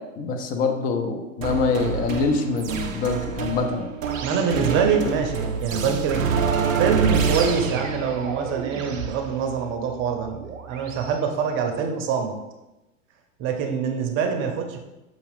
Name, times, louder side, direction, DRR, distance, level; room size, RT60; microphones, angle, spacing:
voice 1, 0.2-3.9, left 4 dB, 25° left, 4 dB, 0.4 m, -25 dB
sound 1, 1.4-11.1, right 6 dB, 90° right, 0.6 m, -27 dB
voice 2, 4.2-6.2 6.8-10.4 10.7-12.3 13.4-14.8, right 6 dB, 30° right, 4 dB, 0.7 m, -25 dB
5.6 x 2.4 x 3.4 m, 0.99 s
hypercardioid pair, 95°, 39 cm